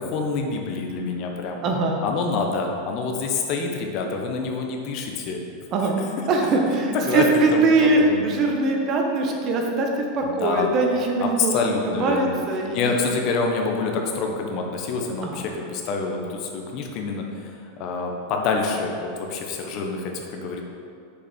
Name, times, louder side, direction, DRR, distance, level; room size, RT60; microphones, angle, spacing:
voice 1, 0.0-1.7 2.0-5.4 6.9-7.2 7.5-7.7 7.9-8.3 10.2-10.7 11.2-12.4 12.7-17.5 17.8-20.6, left 4 dB, 50° left, 2 dB, 1.1 m, -27 dB
voice 2, 1.6-2.0 5.7-12.9 15.2-15.4, right 2 dB, 40° right, 1 dB, 1.2 m, -22 dB
6.7 x 5.0 x 5.3 m, 2.4 s
hypercardioid pair, 110°, 0 cm